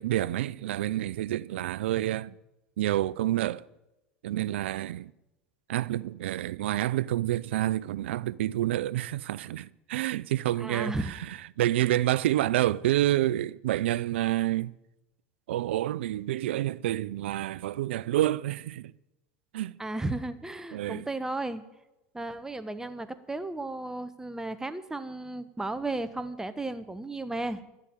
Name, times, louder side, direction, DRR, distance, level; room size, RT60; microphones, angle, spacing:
voice 1, 0.0-2.3 2.8-3.7 4.2-5.1 5.7-10.9 11.6-14.7 15.5-18.9 19.5-19.8 20.7-21.0, right 14 dB, 85° right, 0.4 m, -28 dB
voice 2, 10.6-11.1 19.8-21.6 22.1-27.6, right 2 dB, 10° right, 1.1 m, -34 dB
12.0 x 8.4 x 9.0 m
hypercardioid pair, 100°, 6 cm